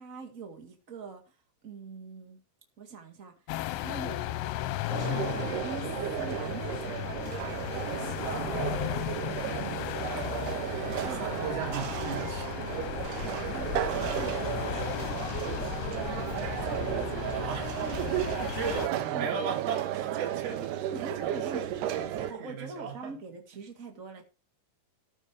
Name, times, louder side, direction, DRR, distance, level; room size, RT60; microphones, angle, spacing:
voice 1, 0.0-1.3 1.6-2.4 2.8-3.3 3.7-4.4 4.8-7.0 10.8-11.5 13.2-15.3 15.8-17.4 18.4-18.6 19.1-19.5 20.9-21.8 22.3-24.2, right 4 dB, 60° right, 4 dB, 0.8 m, -43 dB
sound 1, 3.5-18.9, left 14 dB, 85° left, 3.1 m, -35 dB
sound 2, 4.9-22.3, right 11 dB, 75° right, 2.9 m, -34 dB
voice 2, 7.8-8.8 9.2-9.8 11.0-12.9 13.1-13.4 17.3-17.7 18.5-20.9 21.2-21.7 21.9-23.1, right 6 dB, 40° right, 0 dB, 3.4 m, -38 dB
14.0 x 6.6 x 4.7 m, 0.29 s
omnidirectional pair, 5.1 m